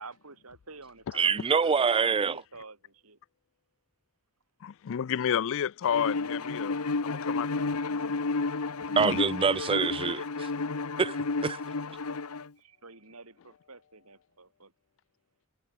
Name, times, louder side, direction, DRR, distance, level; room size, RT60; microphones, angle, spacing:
voice 1, 0.0-3.2 12.6-14.7, right 3 dB, 75° right, 5.8 m, -49 dB
voice 2, 1.2-2.4 9.0-10.5 11.0-11.2 11.4-11.6, right 5 dB, 25° right, 0.4 m, -25 dB
voice 3, 4.6-8.2 8.9-9.2, left 8 dB, 65° left, 0.4 m, -31 dB
Bowed string instrument, 5.9-12.5, left 3 dB, 90° left, 1.2 m, -31 dB
head